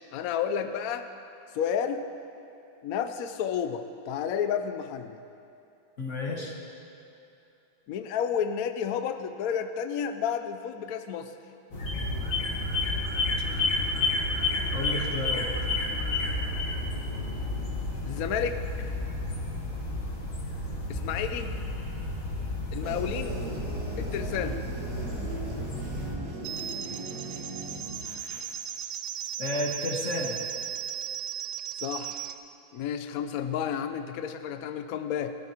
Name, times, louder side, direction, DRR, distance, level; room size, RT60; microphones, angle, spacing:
voice 1, 0.1-1.1 1.5-2.1 2.8-5.2 7.9-11.3 18.1-18.6 20.9-21.5 22.7-23.5 24.0-24.6 31.8-32.3 32.7-35.3, left 8 dB, 70° left, 8 dB, 0.8 m, -31 dB
voice 2, 6.0-6.6 14.7-15.5 29.4-30.4, left 2 dB, 40° left, 0 dB, 1.5 m, -31 dB
sound 1, 11.7-26.2, left 2 dB, 90° left, 2.9 m, -31 dB
sound 2, 22.8-28.4, right 2 dB, 50° right, 2.0 m, -38 dB
sound 3, 26.4-32.4, right 9 dB, 75° right, 1.2 m, -36 dB
20.0 x 13.5 x 3.0 m, 2.7 s
omnidirectional pair, 2.2 m